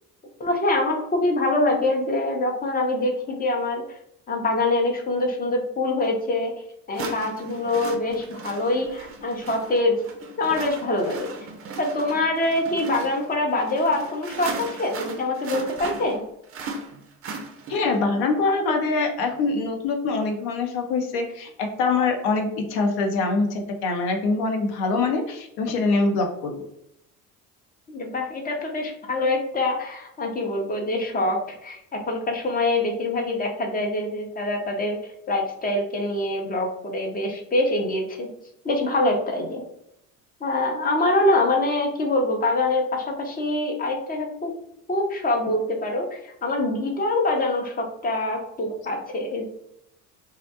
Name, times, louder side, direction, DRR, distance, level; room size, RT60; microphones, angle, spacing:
voice 1, 0.4-3.8 4.3-6.5 6.9-10.0 10.4-11.3 11.8-16.2 27.9-31.4 31.6-31.8 32.1-35.0 35.3-38.3 38.6-39.6 40.4-44.5 44.9-49.5, left 2 dB, 20° left, 1 dB, 0.6 m, -24 dB
sound 1, 6.0-6.1 6.9-18.0, right 3 dB, 30° right, 0.5 m, -37 dB
voice 2, 17.7-26.6, left 3 dB, 55° left, 4 dB, 0.7 m, -24 dB
2.4 x 2.0 x 2.7 m, 0.78 s
hypercardioid pair, 65°, 45 cm